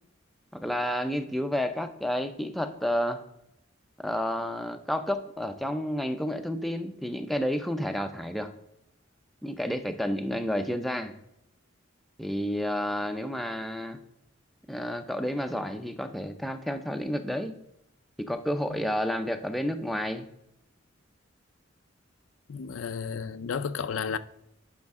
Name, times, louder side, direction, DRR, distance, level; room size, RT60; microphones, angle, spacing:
voice 1, 0.5-3.2 4.0-8.5 9.4-11.1 12.2-14.0 14.7-17.5 18.2-20.3, equal, ahead, 0.5 m, -30 dB
voice 2, 22.5-24.2, left 6 dB, 85° left, 0.5 m, -32 dB
10.5 x 5.1 x 3.6 m
head